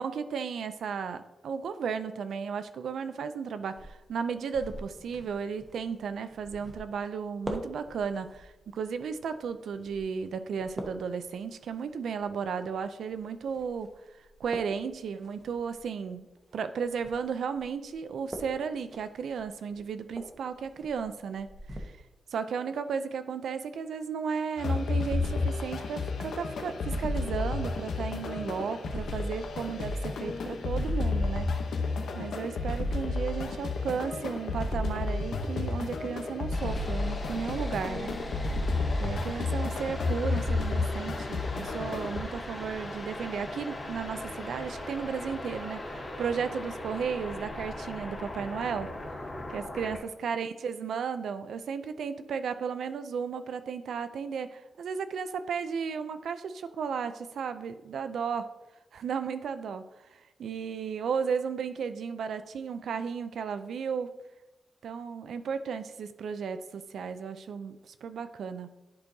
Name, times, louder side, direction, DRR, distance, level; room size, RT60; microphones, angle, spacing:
voice 1, 0.0-13.9 14.4-16.3 16.5-21.9 22.3-31.5 32.2-38.2 39.0-48.9 49.5-58.5 58.9-59.8 60.1-64.1 64.8-68.7, right 6 dB, 90° right, 10 dB, 0.4 m, -34 dB
sound 1, 3.7-21.8, right 1 dB, 20° right, 1.0 m, -46 dB
sound 2, 24.6-42.2, left 3 dB, 85° left, 0.8 m, -31 dB
sound 3, 36.5-50.0, left 1 dB, 35° left, 2.2 m, -39 dB
10.5 x 4.5 x 2.7 m, 1.0 s
wide cardioid pair, 120°, 0 cm